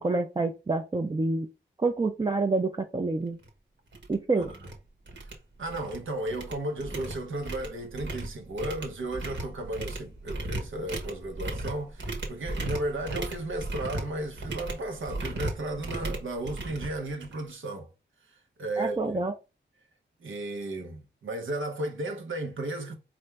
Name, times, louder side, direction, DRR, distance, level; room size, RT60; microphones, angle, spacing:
voice 1, 0.0-1.5 1.8-3.4 4.1-4.5 18.8-19.3, right 3 dB, 20° right, 0.4 m, -27 dB
sound 1, 3.4-3.5 3.9-4.1 4.4-4.7 5.1-6.0 6.3-17.5, right 2 dB, 65° right, 1.1 m, -36 dB
voice 2, 5.6-17.9 18.6-19.2 20.2-22.9, right 1 dB, 85° right, 0.9 m, -34 dB
4.3 x 2.5 x 3.2 m
wide cardioid pair, 70°, 20 cm